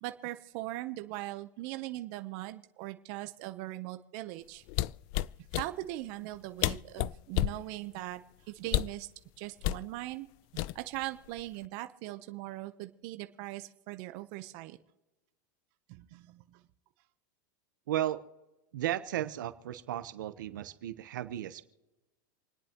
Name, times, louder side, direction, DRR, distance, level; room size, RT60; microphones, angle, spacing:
voice 1, 0.0-4.6 5.5-9.1 9.4-10.3 10.7-14.8 15.9-16.6, right 17 dB, 50° right, 9 dB, 0.8 m, -40 dB
sound 1, 4.7-5.7 6.3-6.4 6.6-7.6 8.7-9.0 9.6-9.9 10.6-11.0 11.4-11.7, left 16 dB, 45° left, 0.3 m, -30 dB
voice 2, 17.9-18.2 18.7-21.6, right 12 dB, 85° right, 11 dB, 1.0 m, -34 dB
28.0 x 10.0 x 3.0 m, 1.1 s
supercardioid pair, 135°, 10 cm